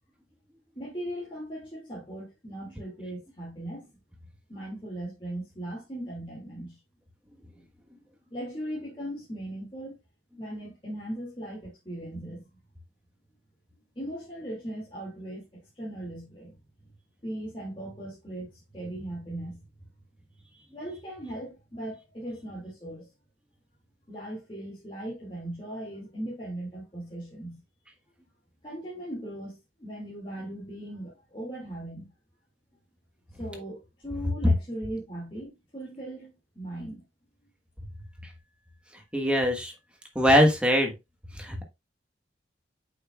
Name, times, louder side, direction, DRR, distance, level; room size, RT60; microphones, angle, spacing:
voice 1, 0.8-3.9 4.5-6.8 7.5-7.6 8.3-10.0 10.4-12.4 14.0-15.5 15.7-16.6 17.2-19.6 20.7-23.1 24.1-27.6 28.6-32.1 33.4-37.0, right 1 dB, 30° left, 2.1 m, -38 dB
voice 2, 39.1-39.7 40.1-40.9 41.4-41.6, equal, 5° right, 1.3 m, -22 dB
7.9 x 5.8 x 2.3 m
head